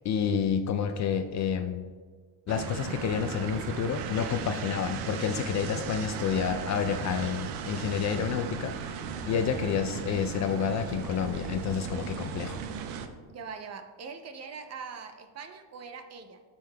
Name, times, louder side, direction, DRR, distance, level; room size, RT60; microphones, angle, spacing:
voice 1, 0.0-1.9 2.5-12.6, left 7 dB, 40° left, 7 dB, 0.4 m, -29 dB
sound 1, 2.5-13.1, right 7 dB, 90° right, 0.8 m, -36 dB
voice 2, 13.3-16.4, right 5 dB, 35° right, 8 dB, 0.5 m, -42 dB
10.5 x 6.8 x 2.2 m, 1.5 s
cardioid pair, 120°, 48 cm